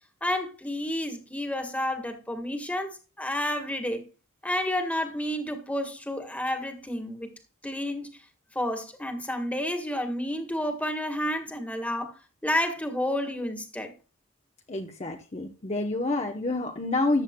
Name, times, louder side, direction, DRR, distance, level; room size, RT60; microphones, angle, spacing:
voice 1, 0.2-4.0 4.4-7.3 7.6-8.2 8.5-12.1 12.4-13.9, left 1 dB, 5° left, 1.5 m, -30 dB
voice 2, 14.7-17.2, left 2 dB, 30° left, 0.9 m, -28 dB
14.5 x 9.5 x 2.2 m
head